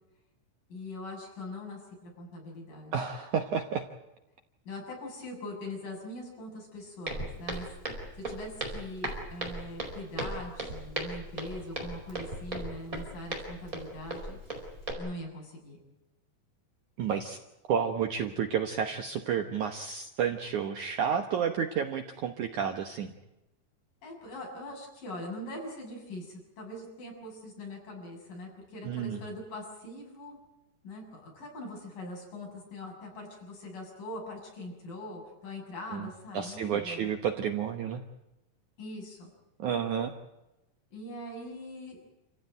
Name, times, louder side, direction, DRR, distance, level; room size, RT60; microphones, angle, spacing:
voice 1, 0.7-2.9 4.7-7.7 8.2-14.4 15.0-15.8 24.0-30.4 30.8-37.1 38.8-39.3 40.9-42.0, left 1 dB, 55° left, 0 dB, 8.7 m, -42 dB
voice 2, 2.9-3.8 17.0-17.4 17.7-23.1 28.8-29.2 35.9-36.1 36.3-38.0 39.6-40.1, right 7 dB, 65° right, 6 dB, 2.1 m, -31 dB
Walk footsteps, 7.1-14.9, right 2 dB, 20° right, 4.9 m, -37 dB
28.0 x 15.5 x 9.1 m, 0.94 s
omnidirectional pair, 4.6 m